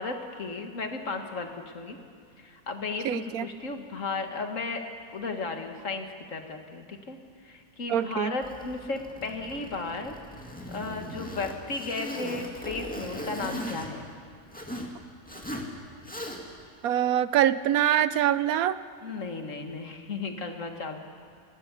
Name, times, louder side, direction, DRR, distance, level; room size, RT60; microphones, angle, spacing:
voice 1, 0.0-2.0 2.4-4.8 5.1-7.2 7.4-10.2 10.7-14.0 19.0-21.0, left 3 dB, 60° left, 5 dB, 2.1 m, -34 dB
voice 2, 3.0-3.5 7.9-8.4 16.8-18.8, right 11 dB, 80° right, 14 dB, 1.1 m, -24 dB
Zipper (clothing), 8.4-14.9 15.3-15.7 16.0-16.6, equal, 5° left, 2.1 m, -38 dB
29.5 x 12.0 x 8.4 m, 2.3 s
omnidirectional pair, 1.5 m